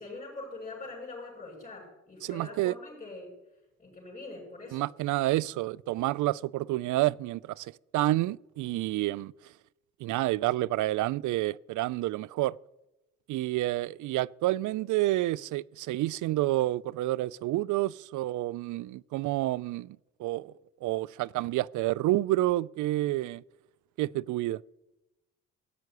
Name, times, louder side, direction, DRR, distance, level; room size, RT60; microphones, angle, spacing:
voice 1, 0.0-3.3 3.8-4.9, left 3 dB, 20° left, 7.2 m, -43 dB
voice 2, 2.2-2.8 4.7-9.3 10.0-12.5 13.3-20.5 20.8-23.4 24.0-24.6, right 16 dB, 75° right, 0.5 m, -29 dB
15.5 x 7.7 x 9.6 m
cardioid pair, 90°, 30 cm